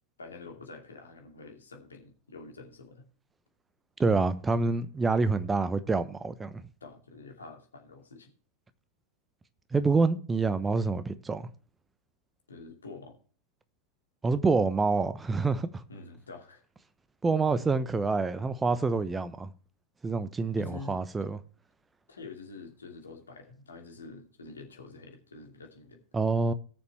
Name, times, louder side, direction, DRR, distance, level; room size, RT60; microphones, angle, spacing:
voice 1, 0.2-3.0 6.8-8.3 12.5-13.2 15.9-16.6 20.6-21.0 22.1-26.0, left 3 dB, 70° left, 2.5 m, -46 dB
voice 2, 4.0-6.6 9.7-11.5 14.2-15.8 17.2-19.5 20.0-21.4 26.1-26.5, right 4 dB, 15° right, 0.9 m, -27 dB
18.5 x 6.9 x 3.2 m
figure-of-eight pair, 90°, 0 cm